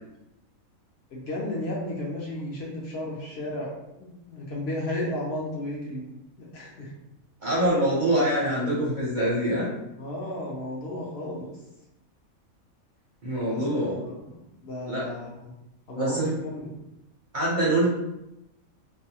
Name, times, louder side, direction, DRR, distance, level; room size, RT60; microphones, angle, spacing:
voice 1, 1.1-6.1 6.4-6.9 10.0-11.5 13.5-14.3 14.6-15.5 15.9-16.8, left 1 dB, 60° left, -4 dB, 0.7 m, -34 dB
voice 2, 7.4-9.7 13.2-14.0 14.9-15.1 15.9-16.3 17.3-17.9, right 1 dB, 45° right, -7 dB, 0.6 m, -24 dB
2.6 x 2.2 x 2.7 m, 0.89 s
omnidirectional pair, 1.5 m